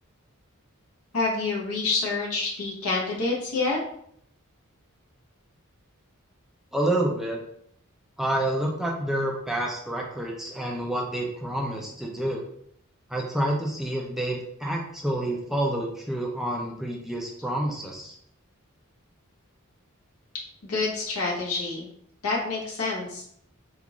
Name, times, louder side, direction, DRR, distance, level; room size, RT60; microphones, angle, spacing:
voice 1, 1.1-3.8 20.6-21.8 22.2-23.2, left 3 dB, 90° left, -4 dB, 1.1 m, -27 dB
voice 2, 6.7-7.4 8.2-12.4 13.1-18.1, right 1 dB, ahead, -1 dB, 0.4 m, -28 dB
3.7 x 2.4 x 2.9 m, 0.69 s
head